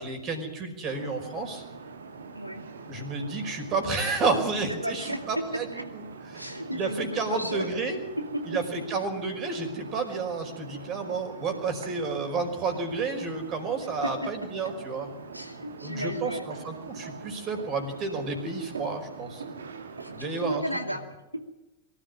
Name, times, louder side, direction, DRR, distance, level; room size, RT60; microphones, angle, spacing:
voice 1, 0.0-1.6 2.9-5.8 6.3-6.4 6.7-8.0 8.5-15.1 15.8-19.4 20.1-20.6, right 4 dB, 35° right, 5 dB, 5.2 m, -31 dB
sound 1, 0.9-20.6, right 4 dB, 70° right, 2.0 m, -43 dB
voice 2, 4.7-5.9 6.3-7.7 8.2-8.6 14.0-14.3 14.6-14.7 15.3-16.4 20.0-21.0 21.3-21.4, equal, 90° right, 5 dB, 2.6 m, -34 dB
23.5 x 13.5 x 9.8 m, 1.0 s
figure-of-eight pair, 90°, 0 cm